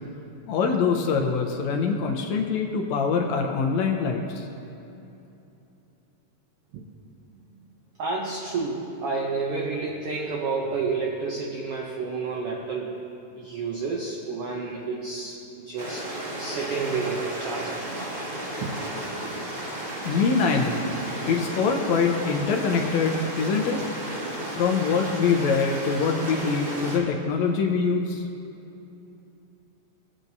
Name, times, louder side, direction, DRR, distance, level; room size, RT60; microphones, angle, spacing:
voice 1, 0.5-4.5 20.0-23.8 24.5-28.2, left 5 dB, 75° left, 2 dB, 1.8 m, -24 dB
voice 2, 8.0-13.0 13.4-17.8 18.6-18.8, right 4 dB, 85° right, -1 dB, 1.3 m, -30 dB
Stream, 15.8-27.0, right 1 dB, 35° right, 2.9 m, -33 dB
20.0 x 7.5 x 2.7 m, 2.9 s
omnidirectional pair, 3.6 m